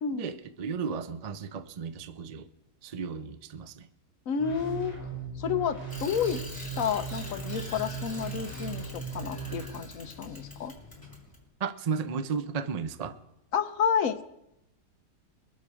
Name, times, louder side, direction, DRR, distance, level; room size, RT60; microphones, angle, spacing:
voice 1, 0.1-2.5 2.8-3.9 11.6-13.2, right 6 dB, 75° right, 0.3 m, -34 dB
voice 2, 4.3-5.0 5.4-6.4 6.8-10.7 13.5-14.2, left 7 dB, 60° left, 1.2 m, -30 dB
sound 1, 4.4-9.6, right 6 dB, 20° right, 3.6 m, -38 dB
Bicycle, 5.9-11.4, left 2 dB, 10° left, 3.6 m, -44 dB
23.0 x 7.9 x 4.9 m
omnidirectional pair, 1.7 m